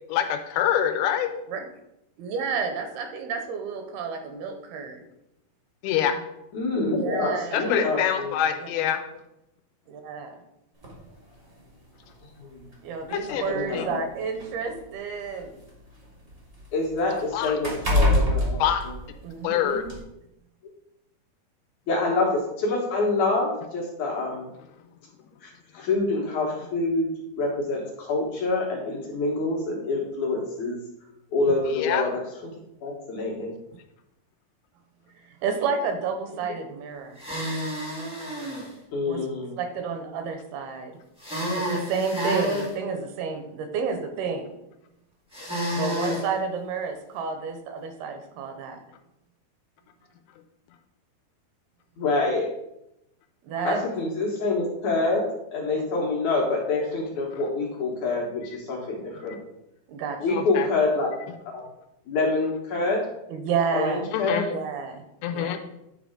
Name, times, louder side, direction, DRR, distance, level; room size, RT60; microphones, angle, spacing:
voice 1, 0.1-1.3 5.8-6.2 7.5-9.0 13.1-13.4 13.7-13.9 17.3-17.5 18.6-18.8 19.4-19.8 25.8-25.9 31.7-32.1 57.3-57.4 60.3-60.7 64.1-64.6 65.2-65.6, left 9 dB, 85° left, 7 dB, 2.6 m, -25 dB
voice 2, 2.2-5.0 7.0-7.8 8.6-8.9 9.9-10.4 12.8-15.6 19.2-19.9 35.4-37.2 39.1-39.3 39.6-41.0 41.6-44.5 45.7-48.8 53.4-53.8 55.7-55.8 59.9-60.5 63.3-64.0 64.5-65.0 65.3-65.5, right 5 dB, 85° right, 5 dB, 2.7 m, -30 dB
voice 3, 6.5-8.3 12.4-12.6 13.3-14.0 16.7-18.6 21.9-24.5 25.4-27.1 27.4-30.8 31.3-32.5 32.8-33.5 38.9-39.5 52.0-52.5 53.6-55.2 55.5-59.4 60.2-61.1 61.5-61.6 62.1-63.0 63.7-64.4, left 3 dB, 65° left, -2 dB, 2.1 m, -26 dB
sound 1, 10.8-11.0 12.0-12.1 12.6-12.7 13.7-15.6 16.0-19.5 19.9-20.0, left 1 dB, 60° right, 0.5 m, -26 dB
sound 2, 37.2-38.7 41.2-42.7 45.3-46.3, equal, 5° right, 0.6 m, -29 dB
9.5 x 3.4 x 4.9 m, 0.85 s
omnidirectional pair, 4.5 m